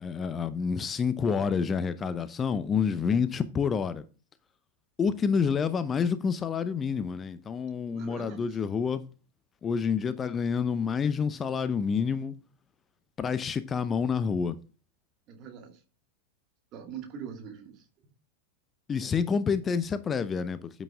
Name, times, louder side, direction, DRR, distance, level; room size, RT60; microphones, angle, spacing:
voice 1, 0.0-4.0 5.0-9.0 9.6-12.3 13.2-14.6 18.9-20.8, left 6 dB, 20° left, 0.6 m, -28 dB
voice 2, 7.8-8.6 15.3-15.8 16.7-17.8, right 7 dB, 35° right, 2.5 m, -42 dB
8.7 x 8.5 x 3.5 m
figure-of-eight pair, 90°, 0 cm